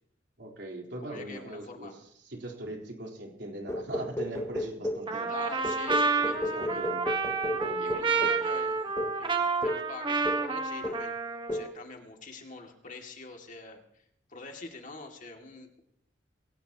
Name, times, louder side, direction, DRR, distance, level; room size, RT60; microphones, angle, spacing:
voice 1, 0.4-1.9 2.3-5.3 6.6-7.1 7.5-8.5, right 1 dB, 65° right, 0 dB, 4.0 m, -41 dB
voice 2, 1.0-2.0 5.3-6.8 7.8-8.9 9.2-11.1 11.5-15.8, left 3 dB, 45° left, 3 dB, 2.4 m, -45 dB
sound 1, 3.7-5.1 5.6-8.5 9.0-9.2 9.6-9.9 10.3-10.6 10.8-11.1 11.5-11.8, left 1 dB, 15° left, 0.8 m, -33 dB
Trumpet, 5.1-11.7, right 4 dB, 25° right, 1.4 m, -29 dB
21.5 x 18.0 x 3.0 m, 0.73 s
head